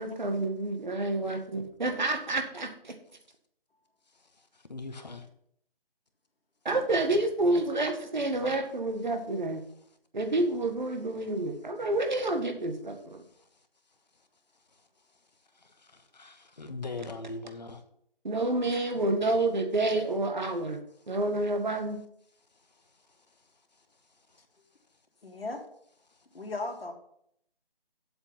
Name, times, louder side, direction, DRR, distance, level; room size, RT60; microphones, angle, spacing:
voice 1, 0.0-3.0 6.7-9.7 10.1-13.2 18.2-20.8 21.1-22.0, right 2 dB, 50° right, 6 dB, 1.7 m, -29 dB
voice 2, 4.7-5.3 16.1-17.8, left 3 dB, 45° left, 7 dB, 1.4 m, -39 dB
voice 3, 25.2-25.6 26.3-26.9, left 2 dB, 80° left, 2 dB, 2.7 m, -36 dB
7.9 x 7.9 x 5.9 m, 0.69 s
figure-of-eight pair, 180°, 29 cm